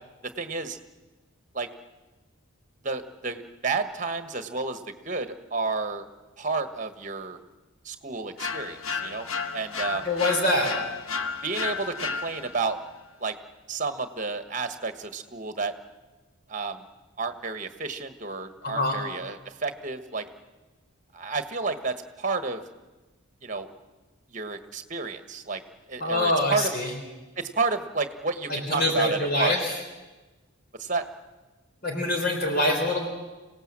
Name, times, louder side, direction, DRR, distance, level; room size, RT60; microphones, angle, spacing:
voice 1, 0.4-0.8 1.5-1.7 2.8-6.1 6.4-7.4 7.8-9.3 9.5-10.1 11.4-12.8 13.2-13.3 13.7-15.7 16.5-16.8 17.2-20.3 21.1-22.6 23.4-23.7 24.3-25.6 25.9-26.7 27.4-29.5 30.8-31.0, right 4 dB, 35° right, 9 dB, 1.4 m, -31 dB
sound 1, 8.4-12.7, left 5 dB, 80° left, 1.1 m, -32 dB
voice 2, 10.0-10.7 18.6-19.0 26.0-26.9 28.5-29.7 31.8-33.1, left 1 dB, 45° left, 2 dB, 3.8 m, -25 dB
26.0 x 17.5 x 7.6 m, 1.2 s
head